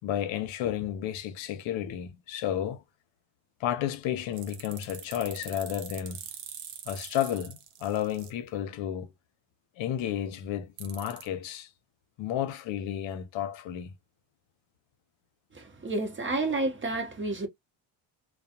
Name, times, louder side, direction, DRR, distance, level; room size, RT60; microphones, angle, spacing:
voice 1, 0.0-2.8 3.6-6.2 6.9-9.1 9.8-11.7 12.2-13.9, left 10 dB, 70° left, 0.8 m, -32 dB
sound 1, 4.3-8.3 10.8-11.3, right 9 dB, 85° right, 0.8 m, -43 dB
voice 2, 15.5-17.5, right 2 dB, 25° right, 0.8 m, -30 dB
2.3 x 2.2 x 2.7 m
cardioid pair, 95°, 48 cm